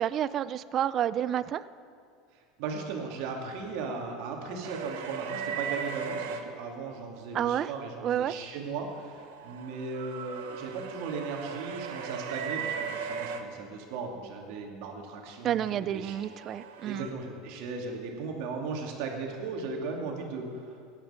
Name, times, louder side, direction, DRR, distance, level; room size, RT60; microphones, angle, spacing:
voice 1, 0.0-1.7 7.3-7.7 8.0-8.4 15.4-17.1, right 10 dB, 40° right, 17 dB, 0.4 m, -29 dB
voice 2, 2.3-16.3 16.8-20.7, right 4 dB, 65° right, 1 dB, 2.6 m, -37 dB
sound 1, 4.6-6.4 8.8-13.4 15.8-17.1, right 6 dB, 80° right, 1.1 m, -37 dB
16.5 x 10.0 x 5.8 m, 2.3 s
supercardioid pair, 130°, 0 cm